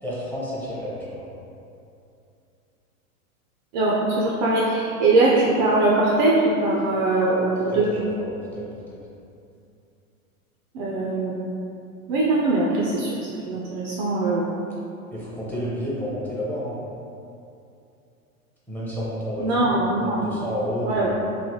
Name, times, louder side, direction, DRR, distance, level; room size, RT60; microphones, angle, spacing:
voice 1, 0.0-1.3 7.7-8.6 8.9-9.0 15.1-16.8 18.7-19.7 20.0-21.1, equal, 5° left, -8 dB, 0.6 m, -30 dB
voice 2, 3.7-7.9 10.7-11.6 12.1-13.2 13.5-14.5 19.4-20.3 20.8-21.1, right 2 dB, 35° right, -5 dB, 0.4 m, -21 dB
3.2 x 2.6 x 2.7 m, 2.6 s
hypercardioid pair, 100°, 44 cm